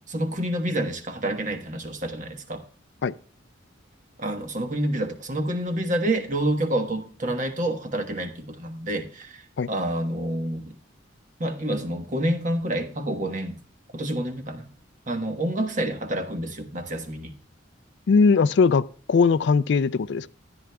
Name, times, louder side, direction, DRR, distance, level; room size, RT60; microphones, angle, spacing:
voice 1, 0.1-2.6 4.2-10.7 11.4-13.6 13.9-14.7 15.1-17.3, right 1 dB, 40° right, 1.2 m, -28 dB
voice 2, 18.1-20.3, left 5 dB, 60° left, 0.3 m, -20 dB
13.5 x 10.5 x 2.3 m
head